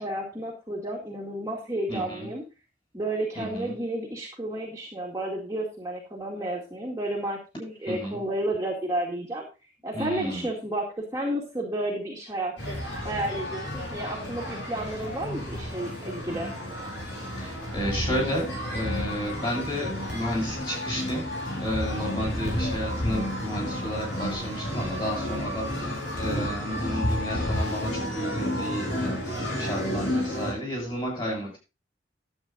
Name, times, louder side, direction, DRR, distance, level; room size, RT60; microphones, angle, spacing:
voice 1, 0.0-2.4 2.9-9.5 9.8-12.8 13.0-16.5, right 1 dB, 15° right, -3 dB, 2.0 m, -31 dB
voice 2, 1.9-2.3 3.4-3.7 7.9-8.2 9.9-10.5 16.3-16.6 17.3-21.3 21.6-31.6, equal, 25° left, 0 dB, 7.3 m, -32 dB
sound 1, 12.6-30.5, left 1 dB, 60° left, 5.4 m, -31 dB
11.5 x 8.5 x 3.9 m, 0.29 s
head